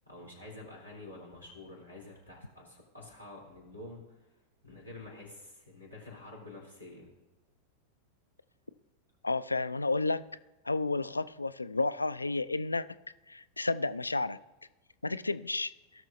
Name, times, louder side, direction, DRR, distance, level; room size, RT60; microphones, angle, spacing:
voice 1, 0.0-4.3 4.6-7.1, left 2 dB, 90° right, -3 dB, 3.3 m, -48 dB
voice 2, 9.2-10.2 10.7-12.8 13.3-14.4 15.0-15.7, left 3 dB, 80° left, 14 dB, 0.4 m, -31 dB
17.5 x 6.3 x 2.7 m, 1.0 s
figure-of-eight pair, 90°, 0 cm